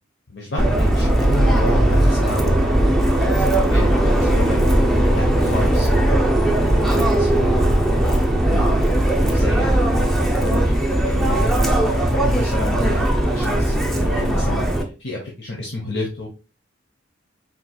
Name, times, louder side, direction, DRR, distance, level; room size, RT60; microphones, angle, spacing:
voice 1, 0.3-5.9 6.5-7.5 8.1-8.6 9.3-9.8 10.4-11.5 12.0-16.3, left 2 dB, 60° left, -1 dB, 0.9 m, -31 dB
Subway metro underground, 0.6-14.8, right 1 dB, ahead, 0.6 m, -18 dB
4.5 x 3.8 x 2.2 m, 0.33 s
head